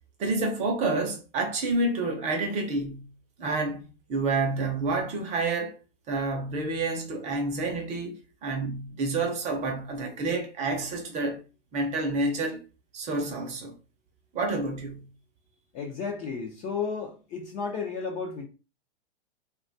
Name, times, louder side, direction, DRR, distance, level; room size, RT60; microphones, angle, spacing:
voice 1, 0.2-3.1 3.4-5.7 6.1-11.4 11.7-12.6 12.9-13.7 14.3-15.1, right 3 dB, 25° right, 0.5 m, -29 dB
voice 2, 15.7-18.5, left 5 dB, 25° left, 0.4 m, -33 dB
2.7 x 2.3 x 2.6 m
hypercardioid pair, 135°, 30 cm